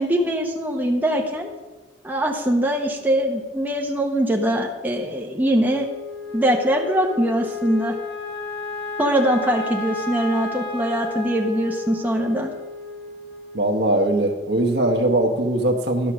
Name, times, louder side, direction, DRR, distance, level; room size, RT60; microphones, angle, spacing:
voice 1, 0.0-1.5 2.0-5.9 6.3-7.9 9.0-12.5, right 1 dB, 10° right, 0 dB, 1.0 m, -22 dB
Wind instrument woodwind instrument, 5.7-14.1, left 3 dB, 65° left, 1.7 m, -33 dB
voice 2, 13.5-16.1, right 1 dB, 65° right, 2 dB, 1.2 m, -20 dB
12.0 x 5.8 x 6.2 m, 1.2 s
head